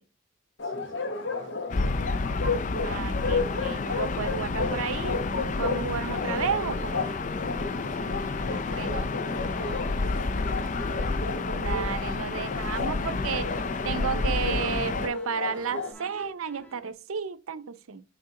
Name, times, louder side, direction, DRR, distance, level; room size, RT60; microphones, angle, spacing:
Bark, 0.6-15.9, left 3 dB, 60° left, 1.0 m, -34 dB
voice 1, 0.6-2.5 7.9-8.1 8.7-11.2, right 1 dB, 45° right, 2.9 m, -49 dB
Gull seagull / Ocean, 1.7-15.1, left 3 dB, 35° left, 0.4 m, -30 dB
voice 2, 2.8-5.2 5.6-7.0 8.7-9.1 11.5-13.5 13.8-18.0, right 6 dB, 85° right, 0.6 m, -32 dB
sound 1, 6.1-16.9, left 1 dB, 10° left, 0.8 m, -47 dB
6.6 x 4.9 x 3.6 m
head